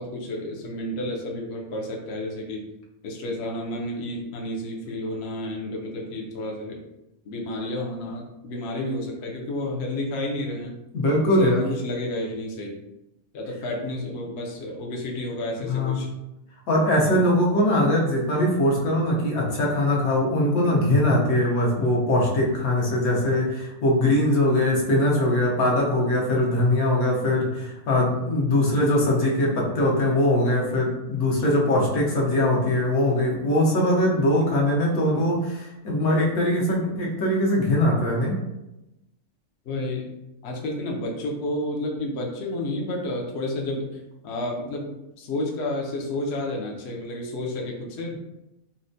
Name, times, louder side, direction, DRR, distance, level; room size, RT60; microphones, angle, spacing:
voice 1, 0.0-2.6 3.0-6.8 7.2-10.8 11.4-12.8 13.3-16.1 39.7-40.1 40.4-44.9 45.2-48.1, left 1 dB, 60° left, -1 dB, 0.8 m, -31 dB
voice 2, 10.9-11.6 15.6-16.1 16.7-38.3, left 1 dB, 75° left, -3 dB, 1.3 m, -21 dB
4.2 x 2.1 x 2.6 m, 0.93 s
omnidirectional pair, 1.5 m